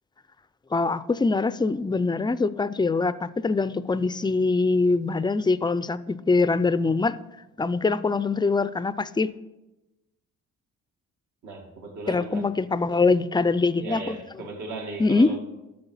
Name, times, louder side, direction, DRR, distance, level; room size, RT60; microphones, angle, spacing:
voice 1, 0.7-7.2 7.6-9.3 12.1-14.2 15.0-15.3, left 3 dB, 15° left, 0.5 m, -23 dB
voice 2, 11.4-12.5 13.8-15.4, right 3 dB, 70° right, 2.3 m, -37 dB
12.0 x 6.5 x 5.5 m
cardioid pair, 90°, 30 cm